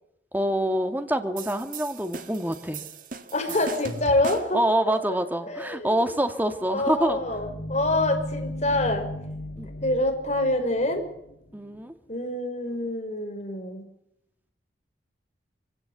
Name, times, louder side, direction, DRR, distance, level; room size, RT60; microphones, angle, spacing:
voice 1, 0.3-2.8 4.5-7.2 9.6-9.7 11.5-11.9, right 1 dB, 10° right, 7 dB, 2.1 m, -26 dB
sound 1, 1.4-4.7, right 4 dB, 50° right, 2.1 m, -38 dB
voice 2, 3.3-4.6 5.5-6.0 6.7-9.1 9.8-11.0 12.1-13.9, left 1 dB, 40° left, 4 dB, 5.4 m, -26 dB
sound 2, 6.4-11.8, left 1 dB, 65° left, 4.7 m, -37 dB
23.5 x 16.5 x 8.2 m, 0.80 s
head